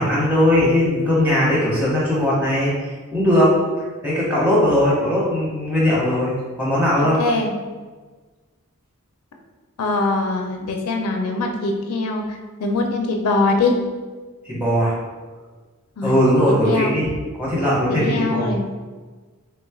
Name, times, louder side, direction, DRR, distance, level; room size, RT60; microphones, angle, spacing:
voice 1, 0.0-2.7 3.1-3.5 4.0-7.2 14.4-14.9 16.0-17.1 17.4-18.5, left 1 dB, 10° right, -8 dB, 0.9 m, -19 dB
voice 2, 7.0-7.5 9.8-13.8 16.0-16.1 16.6-16.9 17.9-18.6, left 3 dB, 85° left, 3 dB, 0.5 m, -22 dB
3.4 x 3.1 x 2.3 m, 1.4 s
head